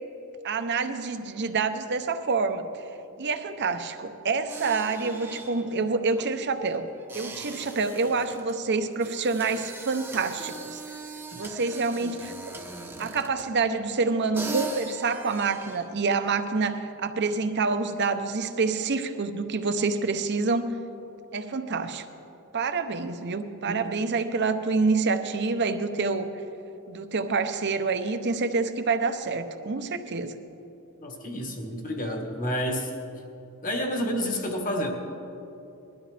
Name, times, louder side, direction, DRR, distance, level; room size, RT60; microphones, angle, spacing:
voice 1, 0.4-2.8 3.2-6.9 7.1-10.8 11.4-12.5 13.0-20.7 21.3-22.0 22.5-26.3 26.9-30.3, right 4 dB, 55° right, 9 dB, 0.8 m, -27 dB
sound 1, 4.5-13.6 14.1-14.2 14.3-15.9, right 2 dB, 10° right, 0.9 m, -40 dB
voice 2, 31.0-32.9 33.6-34.9, equal, 40° left, 2 dB, 1.7 m, -29 dB
21.0 x 13.0 x 3.4 m, 2.9 s
head